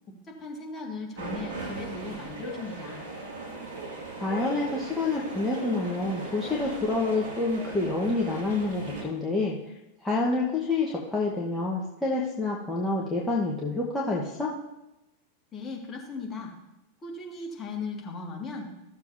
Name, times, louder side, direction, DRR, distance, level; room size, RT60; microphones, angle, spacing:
voice 1, 0.4-3.0 15.5-16.5 17.0-18.7, left 3 dB, 25° left, -1 dB, 1.9 m, -37 dB
sound 1, 1.2-9.0, right 3 dB, 55° right, 2.3 m, -38 dB
voice 2, 4.2-9.6 10.0-14.5, left 3 dB, 5° left, -5 dB, 1.2 m, -28 dB
14.5 x 7.1 x 2.7 m, 0.93 s
figure-of-eight pair, 90°, 0 cm